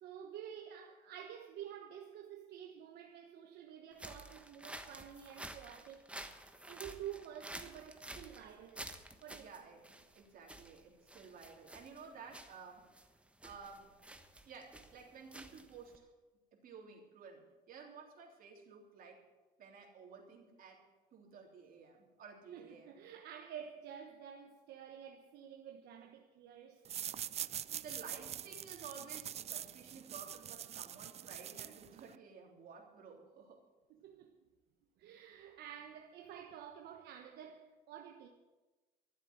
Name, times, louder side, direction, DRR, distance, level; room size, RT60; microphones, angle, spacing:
voice 1, 0.0-6.0 6.7-8.9 9.2-9.7 22.5-26.9 33.9-34.3 35.0-38.3, right 9 dB, 75° right, 1.2 m, -50 dB
sound 1, 3.9-16.0, right 1 dB, 5° right, 1.1 m, -51 dB
voice 2, 9.3-12.9 13.4-13.9 14.5-16.1 16.5-19.2 19.6-20.8 21.1-23.0 27.7-33.6, right 5 dB, 55° right, 3.5 m, -54 dB
sound 2, 26.8-32.2, right 10 dB, 40° right, 0.4 m, -44 dB
13.0 x 7.7 x 9.7 m
cardioid pair, 110°, 17 cm